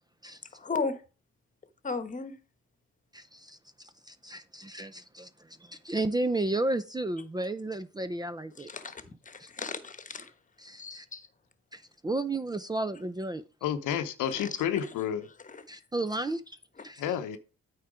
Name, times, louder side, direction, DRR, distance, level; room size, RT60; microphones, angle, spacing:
voice 1, 0.5-1.0 1.8-2.4 8.6-10.3 10.8-11.3 14.4-14.5 15.5-15.6, left 4 dB, 25° left, 1.2 m, -35 dB
voice 2, 3.1-3.6 4.1-8.7 9.4-9.5 10.6-11.1 11.7-13.4 15.7-16.6 16.8-17.0, right 2 dB, 15° right, 0.5 m, -33 dB
voice 3, 13.6-15.3 17.0-17.4, left 9 dB, 90° left, 0.8 m, -30 dB
8.7 x 4.5 x 4.9 m
cardioid pair, 90°, 30 cm